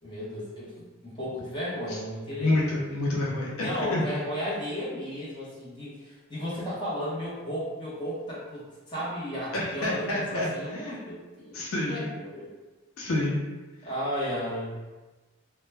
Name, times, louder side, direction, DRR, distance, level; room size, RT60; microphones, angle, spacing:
voice 1, 0.0-2.7 3.6-11.6 11.9-12.5 13.8-14.7, equal, 20° left, -9 dB, 0.8 m, -34 dB
voice 2, 2.4-4.0 9.5-11.0 11.5-12.1 13.0-13.4, left 1 dB, 85° left, -5 dB, 0.6 m, -28 dB
2.2 x 2.1 x 3.2 m, 1.2 s
head